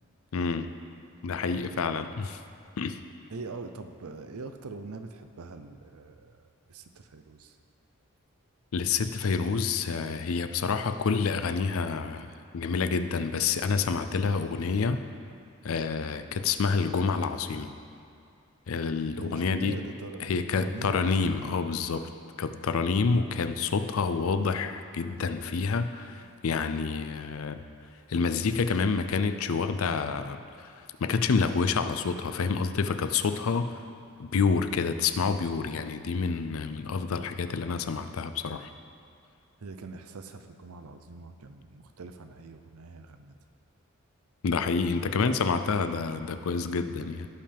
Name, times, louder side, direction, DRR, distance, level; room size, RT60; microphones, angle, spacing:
voice 1, 0.3-0.7 1.2-2.4 2.8-3.0 8.7-12.3 12.5-15.0 15.6-17.7 18.7-19.8 20.2-22.1 22.4-27.6 28.1-30.7 31.0-33.8 34.2-38.7 44.4-47.3, left 5 dB, 70° left, 10 dB, 0.5 m, -28 dB
voice 2, 3.3-7.6 19.2-21.1 39.6-43.3, right 3 dB, 90° right, 8 dB, 0.6 m, -43 dB
16.0 x 5.5 x 3.4 m, 2.5 s
head